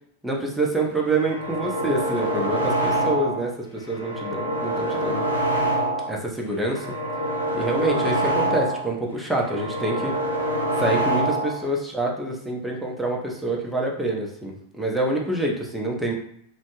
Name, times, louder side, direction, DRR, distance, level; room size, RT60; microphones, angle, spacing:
voice 1, 0.2-5.2 6.1-6.9 7.5-10.1 10.8-16.1, right 2 dB, 5° right, -1 dB, 0.6 m, -26 dB
sound 1, 1.1-3.5 3.8-6.2 6.5-8.9 9.2-11.6, right 1 dB, 85° left, 0.5 m, -25 dB
2.5 x 2.1 x 2.9 m, 0.67 s
figure-of-eight pair, 90°, 0 cm